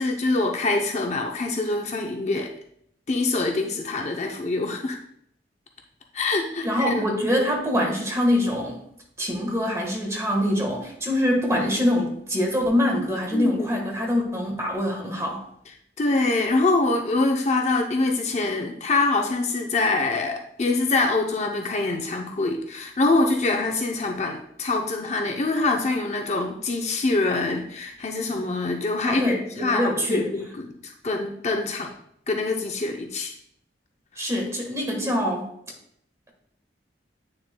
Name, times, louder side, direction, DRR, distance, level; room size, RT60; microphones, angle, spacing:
voice 1, 0.0-2.5 3.1-5.0 6.1-7.1 13.3-13.7 16.0-31.9 32.3-33.3, left 3 dB, 40° left, 2 dB, 0.6 m, -25 dB
voice 2, 6.6-8.8 9.2-15.4 29.1-30.3 34.2-35.5, left 1 dB, 15° right, 1 dB, 1.3 m, -24 dB
8.6 x 6.4 x 2.2 m, 0.71 s
head